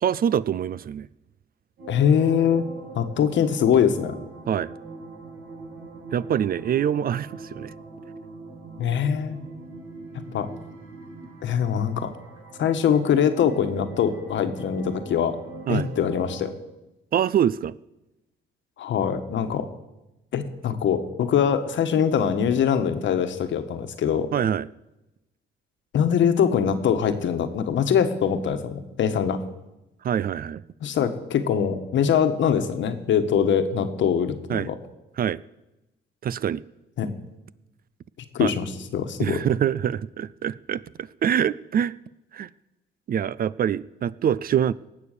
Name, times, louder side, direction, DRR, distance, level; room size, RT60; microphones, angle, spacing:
voice 1, 0.0-1.1 4.5-4.7 6.1-7.7 15.7-15.9 17.1-17.7 24.3-24.7 30.0-30.6 34.5-34.7 35.2-35.4 36.2-36.6 38.4-38.5 39.2-42.0 42.3-42.5 43.1-44.7, right 9 dB, 50° right, 0.4 m, -25 dB
sound 1, 1.8-16.5, right 3 dB, 80° right, 3.0 m, -42 dB
voice 2, 1.9-2.7 2.9-4.1 8.8-9.4 10.3-10.5 11.4-12.1 12.6-15.4 15.7-16.5 18.8-19.7 20.3-24.3 25.9-29.4 30.8-34.7 37.0-37.1 38.3-39.4, left 8 dB, 70° left, 1.3 m, -23 dB
18.0 x 7.0 x 6.7 m
cardioid pair, 90°, 20 cm